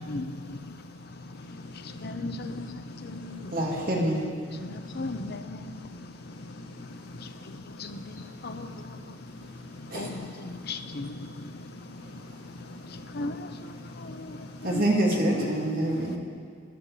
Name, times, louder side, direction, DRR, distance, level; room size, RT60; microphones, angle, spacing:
voice 1, 1.4-2.0 2.5-2.7 3.0-3.5 4.8-5.1 6.5-6.7 7.1-7.2 7.7-8.1 8.6-8.8 9.2-9.5 9.8-10.1 10.7-10.9 11.2-11.5 12.4-12.5 12.9-13.3 13.5-14.0 14.4-14.5, left 1 dB, 80° left, 3 dB, 1.3 m, -48 dB
voice 2, 2.0-2.7 3.1-3.4 4.7-5.7 7.8-7.9 8.4-8.7 9.9-10.2 10.7-11.1 13.1-13.4 14.6-14.9 15.2-15.3, left 2 dB, 50° left, 9 dB, 0.7 m, -34 dB
voice 3, 3.5-4.2 9.9-10.1 14.6-16.2, right 1 dB, 45° right, -2 dB, 2.3 m, -26 dB
11.0 x 9.6 x 8.3 m, 2.2 s
head